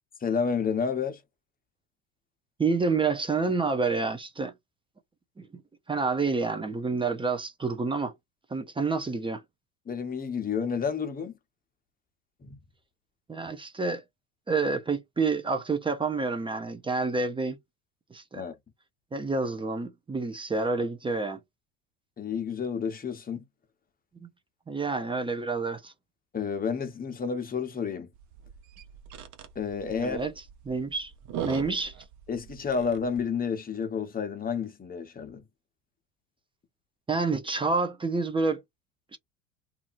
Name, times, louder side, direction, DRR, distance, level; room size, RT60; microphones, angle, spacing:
voice 1, 0.2-1.2 9.9-11.3 12.4-12.6 18.3-18.5 22.2-23.4 26.3-28.1 29.5-30.3 32.3-35.4, left 6 dB, 20° left, 0.9 m, -30 dB
voice 2, 2.6-4.5 5.4-5.5 5.9-8.1 8.5-9.4 13.3-14.0 14.5-17.6 18.1-18.4 19.1-21.4 24.2-24.3 24.7-25.9 29.9-30.3 30.7-31.1 31.4-31.9 37.1-38.6 39.1-39.2, right 4 dB, 15° right, 0.5 m, -28 dB
sound 1, 28.1-33.2, right 9 dB, 50° right, 0.9 m, -41 dB
2.7 x 2.5 x 2.5 m
hypercardioid pair, 75°, 39 cm